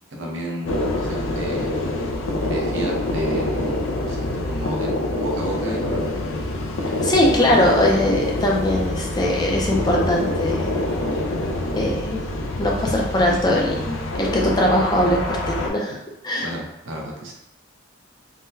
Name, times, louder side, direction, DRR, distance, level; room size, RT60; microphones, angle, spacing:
voice 1, 0.1-1.7 2.4-4.9 5.2-6.1 7.5-7.7 16.4-17.3, right 1 dB, 75° right, -1 dB, 0.7 m, -32 dB
sound 1, 0.6-15.7, left 1 dB, 90° left, 0.4 m, -25 dB
voice 2, 6.8-10.7 11.7-12.2 12.6-16.0 16.2-16.5, left 1 dB, 20° left, -1 dB, 0.4 m, -21 dB
3.7 x 2.2 x 2.6 m, 0.91 s
head